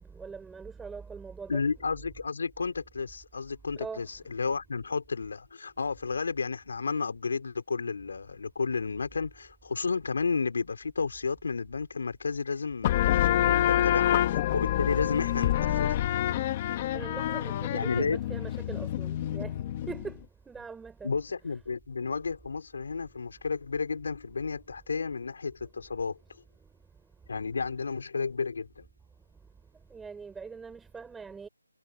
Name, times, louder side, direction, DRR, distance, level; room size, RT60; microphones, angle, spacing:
voice 1, 0.1-1.7 3.8-4.1 16.9-19.6 19.9-20.2 20.5-21.2 29.9-31.5, right 5 dB, 5° right, 5.2 m, -42 dB
voice 2, 1.5-16.1 17.7-18.2 21.0-26.2 27.3-28.9, left 4 dB, 40° left, 4.4 m, -32 dB
sound 1, 12.8-20.1, left 12 dB, 15° left, 0.9 m, -27 dB
figure-of-eight pair, 175°, 0 cm